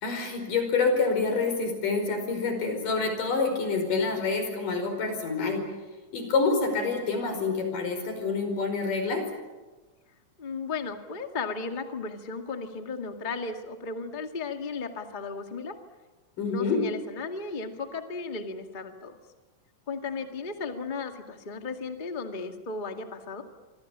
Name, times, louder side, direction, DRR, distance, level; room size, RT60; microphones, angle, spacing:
voice 1, 0.0-5.7 6.1-9.2 16.4-16.8, left 4 dB, 85° left, 5 dB, 6.7 m, -27 dB
voice 2, 10.4-15.7 16.4-19.2 19.9-23.4, left 4 dB, 20° left, 5 dB, 1.5 m, -35 dB
26.0 x 26.0 x 7.4 m, 1.2 s
omnidirectional pair, 3.7 m